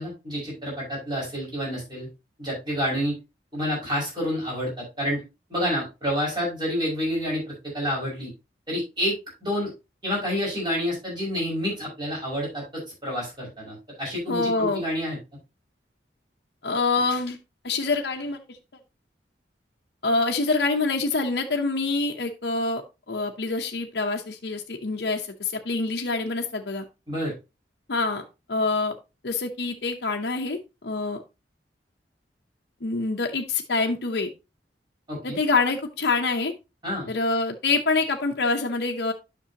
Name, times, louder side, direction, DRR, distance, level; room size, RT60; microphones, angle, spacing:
voice 1, 0.0-2.1 2.4-3.1 3.5-5.2 5.5-8.3 8.7-9.7 10.0-12.6 13.0-15.2 27.1-27.3 35.1-35.4 36.8-37.1, equal, 25° right, -4 dB, 5.9 m, -28 dB
voice 2, 14.3-14.8 16.6-17.4 17.6-18.4 20.0-22.8 23.1-26.8 27.9-29.0 29.2-31.2 32.8-34.3 35.2-36.5 37.1-39.1, left 3 dB, 65° left, 1 dB, 0.8 m, -26 dB
10.0 x 6.1 x 2.9 m, 0.26 s
head